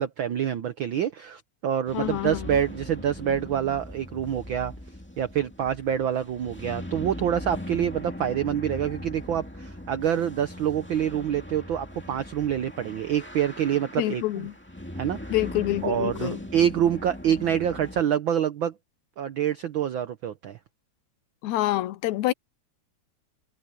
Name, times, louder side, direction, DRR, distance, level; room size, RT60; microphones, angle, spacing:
voice 1, 0.0-4.7 5.2-14.5 15.0-15.3 15.8-18.7 19.2-20.6, right 9 dB, 85° right, 1.0 m, -26 dB
voice 2, 1.9-2.6 14.0-14.5 15.3-16.4 21.4-22.3, left 15 dB, 80° left, 2.2 m, -27 dB
sound 1, 1.9-18.0, left 1 dB, 5° left, 1.7 m, -40 dB
omnidirectional pair, 3.3 m